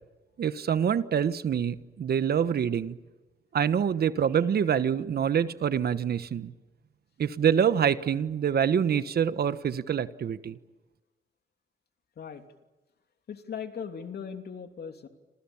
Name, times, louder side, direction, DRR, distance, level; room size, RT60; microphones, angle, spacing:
voice 1, 0.4-3.0 3.5-6.5 7.2-10.6, right 8 dB, 50° right, 13 dB, 1.2 m, -26 dB
voice 2, 13.3-15.1, left 7 dB, 55° left, 6 dB, 3.0 m, -38 dB
29.5 x 27.0 x 7.2 m, 1.1 s
cardioid pair, 90°, 20 cm